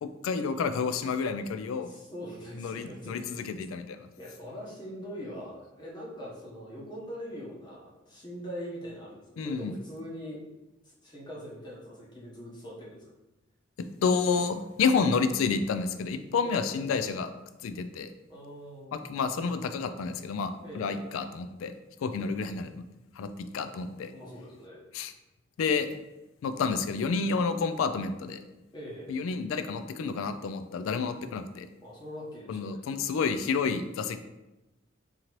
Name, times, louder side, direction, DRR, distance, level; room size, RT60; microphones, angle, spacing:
voice 1, 0.0-1.9 2.6-4.1 9.4-9.7 13.8-17.3 17.6-18.1 18.9-21.7 22.0-22.8 23.2-24.1 24.9-25.1 25.6-25.9 26.4-28.4 29.1-31.7 32.5-34.2, left 5 dB, 90° left, 10 dB, 0.3 m, -30 dB
voice 2, 1.8-3.3 4.2-10.4 10.8-13.0 16.4-16.9 18.3-19.1 20.6-21.1 24.1-24.8 28.7-29.1 31.8-32.8, equal, 25° left, -6 dB, 1.0 m, -42 dB
3.8 x 2.9 x 3.0 m, 1.0 s
head